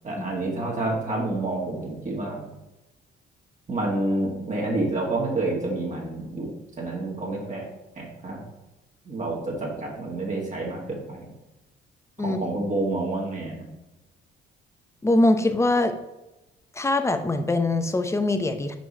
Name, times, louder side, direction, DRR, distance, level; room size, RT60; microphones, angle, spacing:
voice 1, 0.0-2.4 3.7-7.6 8.0-8.4 9.1-11.3 12.2-13.6, right 2 dB, 40° right, -3 dB, 1.9 m, -28 dB
voice 2, 15.0-15.9 16.8-18.8, left 2 dB, 15° left, 8 dB, 0.7 m, -22 dB
6.1 x 4.6 x 4.2 m, 1.0 s
cardioid pair, 90°, 20 cm